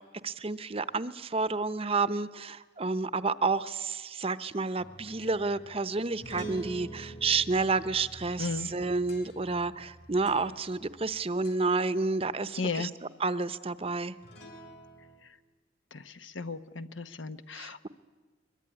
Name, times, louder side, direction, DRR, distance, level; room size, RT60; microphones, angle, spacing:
voice 1, 0.0-14.1 17.5-17.9, right 3 dB, 30° right, 14 dB, 0.7 m, -30 dB
sound 1, 4.8-11.1 11.4-11.8 14.2-15.2, right 2 dB, 60° left, 4.0 m, -47 dB
voice 2, 12.6-12.9 16.3-17.9, left 4 dB, 85° left, 10 dB, 1.1 m, -34 dB
22.5 x 22.0 x 9.8 m, 1.3 s
head